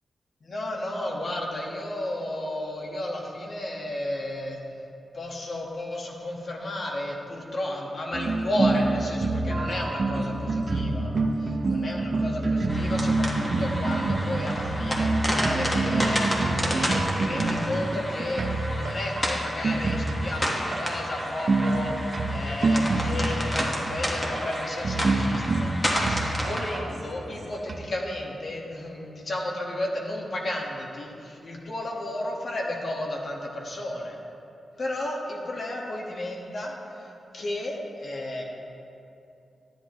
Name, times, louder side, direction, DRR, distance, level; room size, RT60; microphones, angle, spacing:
voice 1, 0.4-4.6 5.1-11.1 11.7-34.2 34.8-38.4, left 1 dB, 45° left, -1 dB, 1.3 m, -33 dB
sound 1, 8.1-27.8, right 2 dB, 45° right, 0.7 m, -27 dB
sound 2, 12.7-26.8, equal, 15° left, 1.4 m, -31 dB
12.0 x 10.5 x 3.0 m, 2.7 s
wide cardioid pair, 140°, 0 cm